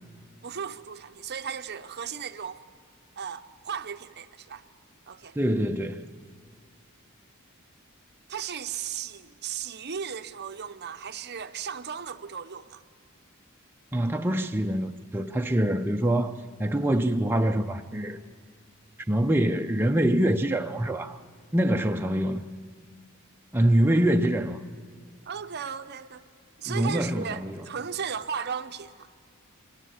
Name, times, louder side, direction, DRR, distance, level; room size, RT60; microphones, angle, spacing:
voice 1, 0.4-2.7 3.2-4.6 5.1-5.4 8.3-12.8 25.3-26.3 26.6-29.1, right 7 dB, 50° right, 0.8 m, -36 dB
voice 2, 5.4-6.1 13.9-18.2 19.1-21.2 21.5-22.5 23.5-24.6 26.7-27.6, right 1 dB, 10° right, 0.5 m, -25 dB
24.0 x 17.5 x 8.1 m
head